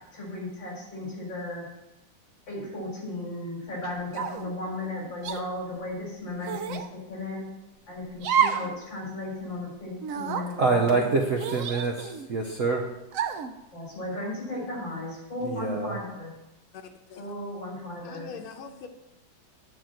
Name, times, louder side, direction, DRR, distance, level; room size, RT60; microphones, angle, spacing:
voice 1, 0.1-1.7 2.5-7.5 7.9-11.1 13.7-16.3 17.2-18.3, left 2 dB, 65° left, -3 dB, 4.6 m, -35 dB
sound 1, 4.1-4.5 5.2-5.4 6.4-6.9 8.2-8.7 9.1-9.2 10.0-10.5 11.4-12.3 13.1-13.5, right 8 dB, 90° right, 0.7 m, -29 dB
voice 2, 10.6-12.8 15.4-16.0, right 4 dB, 55° right, 1 dB, 0.9 m, -26 dB
voice 3, 18.0-18.9, left 5 dB, 90° left, 5 dB, 1.8 m, -42 dB
9.6 x 4.4 x 7.6 m, 0.95 s
omnidirectional pair, 2.2 m